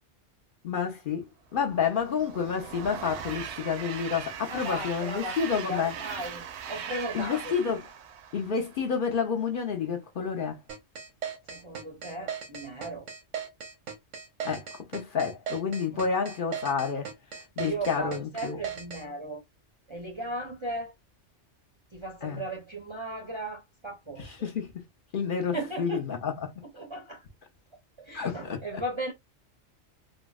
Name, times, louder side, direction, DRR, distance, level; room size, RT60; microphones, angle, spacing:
voice 1, 0.6-5.9 7.1-7.8 8.3-10.6 14.4-17.1 17.6-18.6 22.2-22.4 24.2-24.8 25.1-26.6 28.1-28.8, left 6 dB, 55° left, 0.7 m, -30 dB
Train, 1.6-9.1, right 8 dB, 70° right, 0.8 m, -40 dB
voice 2, 4.5-7.6 11.5-13.1 15.9-16.0 17.6-19.4 19.9-20.9 21.9-24.5 25.5-26.0 26.7-27.2 28.0-29.1, right 1 dB, 35° right, 0.5 m, -37 dB
sound 1, 10.7-19.0, right 7 dB, 90° right, 1.2 m, -37 dB
3.4 x 2.0 x 2.3 m
omnidirectional pair, 1.2 m